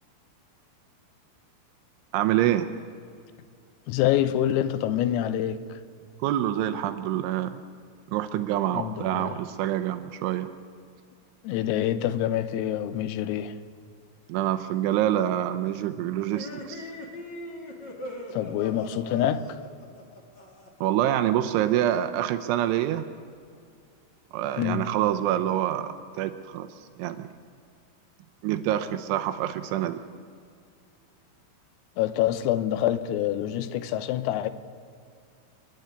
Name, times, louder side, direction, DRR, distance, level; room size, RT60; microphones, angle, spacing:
voice 1, 2.1-2.7 6.2-7.5 8.1-10.5 14.3-16.9 20.8-23.0 24.3-26.7 27.0-27.3 28.4-30.0, right 12 dB, 80° right, 3.0 m, -26 dB
voice 2, 3.9-5.8 8.7-9.4 11.4-13.5 18.3-19.4 24.6-24.9 32.0-34.5, left 11 dB, 90° left, 3.6 m, -26 dB
sound 1, 16.3-20.9, left 1 dB, 40° left, 1.5 m, -40 dB
27.0 x 10.5 x 9.6 m
omnidirectional pair, 5.9 m